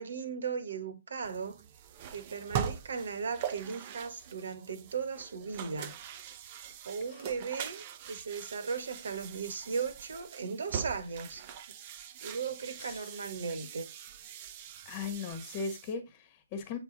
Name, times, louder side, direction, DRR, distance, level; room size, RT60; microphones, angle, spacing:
voice 1, 0.0-1.6 2.1-6.0 6.8-11.4 12.2-13.9, right 5 dB, 65° right, 1.2 m, -37 dB
sound 1, 1.2-15.9, right 9 dB, 35° right, 0.7 m, -42 dB
voice 2, 14.8-16.8, left 5 dB, 35° left, 1.3 m, -38 dB
8.0 x 3.4 x 3.9 m
figure-of-eight pair, 135°, 0 cm